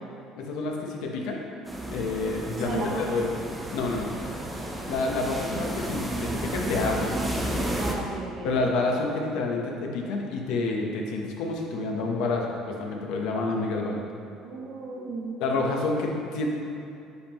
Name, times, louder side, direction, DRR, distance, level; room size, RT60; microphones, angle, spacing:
voice 1, 0.4-1.4 1.9-3.3 3.7-4.1 4.9-7.1 8.4-14.0 15.4-16.5, left 3 dB, 75° left, 0 dB, 0.9 m, -28 dB
sound 1, 1.6-8.0, right 1 dB, 10° right, 0.6 m, -32 dB
voice 2, 2.6-3.2 7.8-8.5 14.4-15.4, right 2 dB, 60° right, -4 dB, 1.4 m, -34 dB
9.4 x 3.7 x 3.0 m, 2.7 s
cardioid pair, 120°, 0 cm